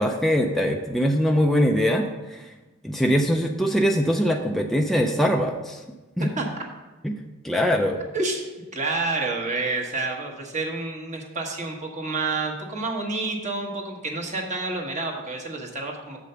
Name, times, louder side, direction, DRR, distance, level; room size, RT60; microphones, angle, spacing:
voice 1, 0.0-2.4 2.8-5.8 6.2-6.3 7.0-7.1 7.4-8.0, equal, ahead, 2 dB, 0.4 m, -22 dB
voice 2, 8.1-8.4 8.7-16.2, right 3 dB, 35° right, 0 dB, 1.2 m, -29 dB
6.8 x 5.0 x 6.6 m, 1.1 s
head